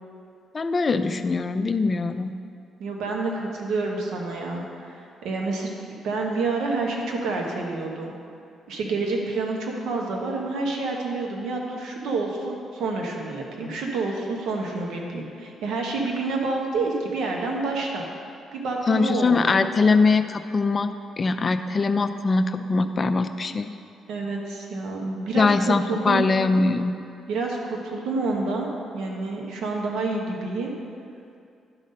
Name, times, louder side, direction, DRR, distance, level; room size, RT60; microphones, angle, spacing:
voice 1, 0.5-2.3 18.9-23.7 25.4-27.0, left 3 dB, 35° left, 9 dB, 0.4 m, -22 dB
voice 2, 2.8-5.7 6.0-8.1 8.7-18.0 18.5-19.6 24.1-26.3 27.3-30.7, right 3 dB, 80° right, 0 dB, 1.0 m, -28 dB
11.5 x 4.0 x 5.3 m, 2.4 s
cardioid pair, 90°, 0 cm